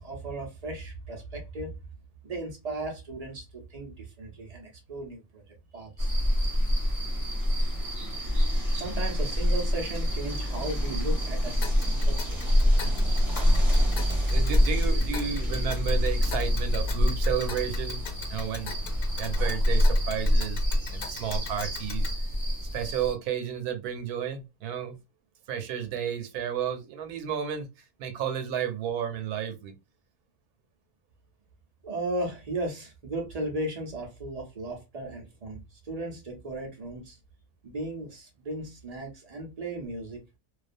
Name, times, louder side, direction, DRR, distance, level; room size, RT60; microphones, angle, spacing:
voice 1, 0.0-1.8 2.2-3.4 3.7-5.4 5.7-6.1 8.7-11.8 12.0-12.4 31.8-37.2 37.6-40.2, right 1 dB, 60° right, 0.4 m, -36 dB
sound 1, 6.0-23.1, equal, 30° right, 0.8 m, -26 dB
Tick, 11.6-22.2, left 5 dB, 80° left, 1.1 m, -41 dB
voice 2, 12.7-13.1 14.3-18.7 19.2-22.1 22.7-25.0 25.5-27.7 28.0-29.7, right 8 dB, 85° right, 1.1 m, -32 dB
2.4 x 2.3 x 2.5 m
omnidirectional pair, 1.6 m